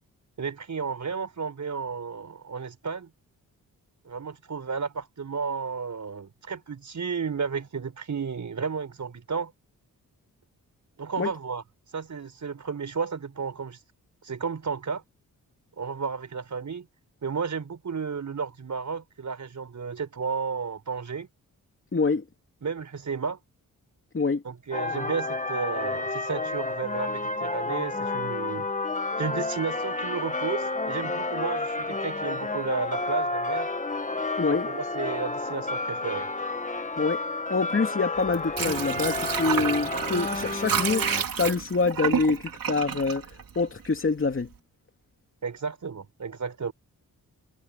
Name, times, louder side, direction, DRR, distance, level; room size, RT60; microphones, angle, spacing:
voice 1, 0.4-3.1 4.1-9.5 11.0-11.6 11.9-13.8 14.2-15.0 15.8-16.9 17.2-21.3 22.6-23.4 24.4-28.7 29.2-33.7 34.5-36.3 45.4-46.7, right 5 dB, 55° right, 5.5 m, -33 dB
voice 2, 21.9-22.2 24.1-24.4 34.4-34.7 37.0-37.2 37.5-41.1 41.4-43.2 43.6-44.5, left 4 dB, 40° left, 2.5 m, -25 dB
sound 1, 24.7-41.2, left 2 dB, 20° left, 2.0 m, -30 dB
Water / Sink (filling or washing), 38.2-44.0 44.4-44.5, right 7 dB, 75° right, 3.5 m, -30 dB
cardioid pair, 80°, 34 cm